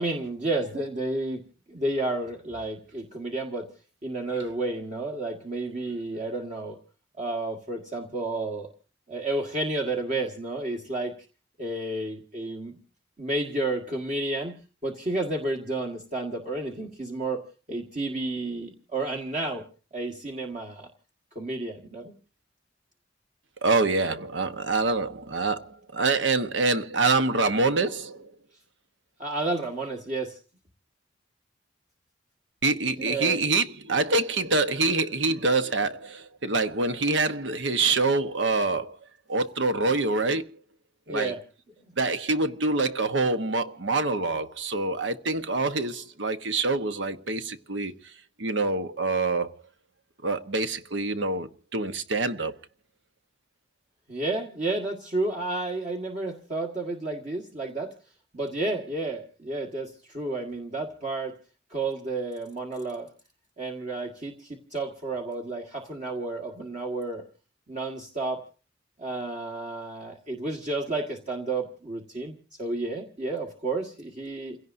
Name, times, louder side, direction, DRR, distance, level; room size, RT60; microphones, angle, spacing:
voice 1, 0.0-1.4 1.7-3.7 4.0-6.8 7.2-8.7 9.1-11.1 11.6-12.8 13.2-14.5 14.8-17.4 17.7-19.6 19.9-20.9 21.4-22.1 29.2-30.4 33.0-33.4 41.1-41.4 54.1-57.9 58.3-61.4 61.7-63.1 63.6-67.2 67.7-68.4 69.0-74.6, right 2 dB, 40° right, 1.7 m, -31 dB
voice 2, 23.6-28.3 32.6-39.0 39.3-40.5 41.1-41.3 42.0-48.1 48.4-49.6 50.2-52.6, right 3 dB, 80° right, 1.1 m, -26 dB
29.0 x 17.0 x 2.7 m
head